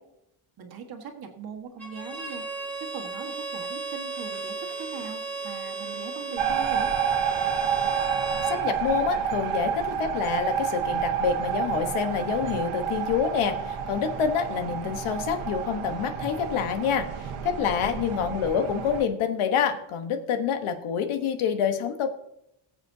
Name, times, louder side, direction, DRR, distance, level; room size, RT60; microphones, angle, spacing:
voice 1, 0.6-2.5 2.8-6.9 17.6-18.2, right 6 dB, 45° right, 3 dB, 1.7 m, -40 dB
Bowed string instrument, 1.8-8.6, right 4 dB, 5° left, 2.8 m, -34 dB
sound 1, 6.4-19.0, right 7 dB, 85° right, 1.5 m, -29 dB
voice 2, 8.5-22.1, left 7 dB, 75° left, 8 dB, 1.3 m, -27 dB
19.5 x 7.9 x 2.8 m, 0.80 s
cardioid pair, 175°, 49 cm